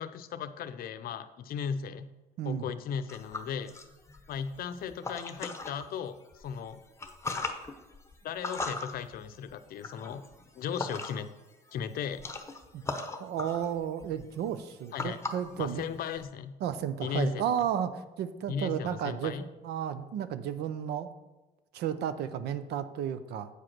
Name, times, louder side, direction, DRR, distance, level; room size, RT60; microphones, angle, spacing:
voice 1, 0.0-2.1 2.4-3.7 4.3-6.8 8.2-10.2 10.6-11.3 11.7-12.2 14.9-15.2 15.6-16.5 17.0-17.4 18.5-19.4, left 7 dB, 60° left, 11 dB, 0.6 m, -36 dB
sound 1, 3.1-5.9 6.3-11.4 11.7-16.2, left 3 dB, 15° left, 0.9 m, -40 dB
voice 2, 13.2-15.8 16.6-19.4 19.6-21.2 21.7-23.5, right 9 dB, 75° right, 12 dB, 0.6 m, -33 dB
8.2 x 4.9 x 5.9 m, 1.1 s
cardioid pair, 110°, 17 cm